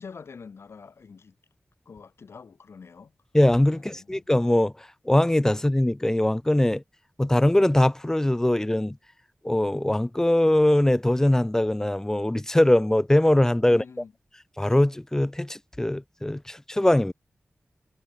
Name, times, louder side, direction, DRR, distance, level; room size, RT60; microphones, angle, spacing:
voice 1, 0.0-1.3 1.8-3.1 3.7-4.3 13.7-14.1, left 5 dB, 75° left, 6.7 m, -45 dB
voice 2, 3.3-4.7 5.1-6.8 7.2-8.9 9.4-13.8 14.6-17.1, left 1 dB, 10° left, 0.8 m, -21 dB
wide cardioid pair, 125°, 4 cm